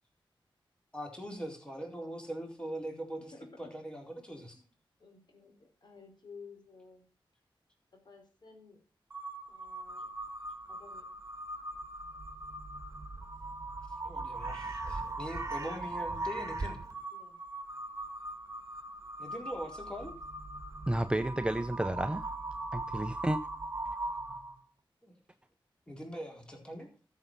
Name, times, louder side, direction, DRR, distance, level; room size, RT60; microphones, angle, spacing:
voice 1, 0.9-4.6 13.9-16.8 19.2-20.1 25.0-25.1 25.9-26.9, equal, 10° left, 4.2 m, -42 dB
voice 2, 3.3-3.7 4.5-4.7 5.0-7.1 7.9-8.8 9.5-10.1 10.7-11.1 17.1-17.4, left 4 dB, 55° left, 4.4 m, -54 dB
Crow, 9.1-24.6, right 2 dB, 35° right, 1.7 m, -40 dB
voice 3, 20.9-22.3 22.7-23.4, right 1 dB, 10° right, 0.7 m, -31 dB
13.5 x 7.3 x 5.6 m
wide cardioid pair, 90°, 9 cm